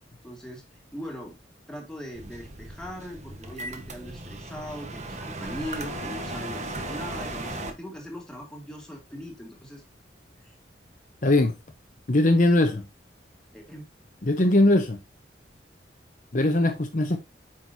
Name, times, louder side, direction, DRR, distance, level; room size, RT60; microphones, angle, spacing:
voice 1, 0.2-0.6 0.9-1.3 1.7-9.8 10.4-10.5 13.5-13.8, equal, 5° left, 2.6 m, -40 dB
sound 1, 2.2-7.7, right 2 dB, 40° right, 1.3 m, -36 dB
voice 2, 11.2-11.6 12.1-12.8 14.2-15.0 16.3-17.2, left 1 dB, 45° left, 1.0 m, -20 dB
9.2 x 6.1 x 2.8 m
head